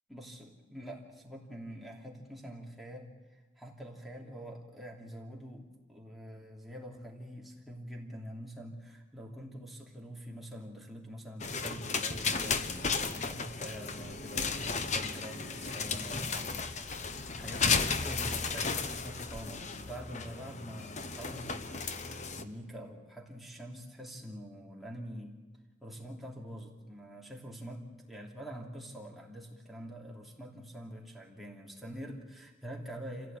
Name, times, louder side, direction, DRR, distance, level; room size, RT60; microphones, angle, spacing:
voice 1, 0.1-25.4 25.8-33.4, equal, ahead, -2 dB, 3.0 m, -46 dB
sound 1, 11.4-22.4, left 4 dB, 35° left, 1.1 m, -34 dB
27.0 x 16.0 x 9.1 m, 1.2 s
head